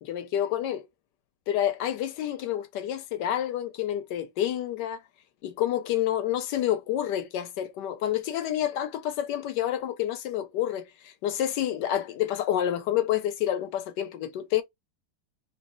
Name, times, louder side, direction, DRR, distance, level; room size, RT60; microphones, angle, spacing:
voice 1, 0.0-0.9 1.5-5.0 5.4-14.6, left 11 dB, 75° left, 1.1 m, -28 dB
3.0 x 2.9 x 3.0 m
omnidirectional pair, 2.0 m